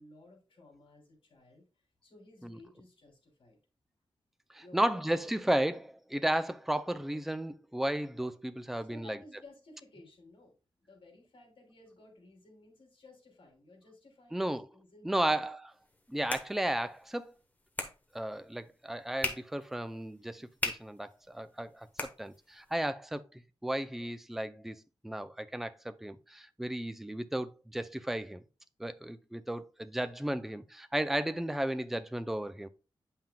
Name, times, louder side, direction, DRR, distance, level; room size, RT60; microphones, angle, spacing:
voice 1, 0.0-3.6 4.6-5.4 8.8-10.5 10.8-15.4 30.0-30.1, left 2 dB, 65° left, 2.9 m, -56 dB
voice 2, 4.5-9.2 14.3-14.6 15.0-15.6 16.1-17.3 18.1-21.9 22.2-28.4 28.8-32.7, right 1 dB, 5° right, 0.3 m, -34 dB
sound 1, 15.8-22.8, left 2 dB, 15° left, 0.9 m, -42 dB
8.7 x 5.7 x 2.2 m
wide cardioid pair, 165°, 10 cm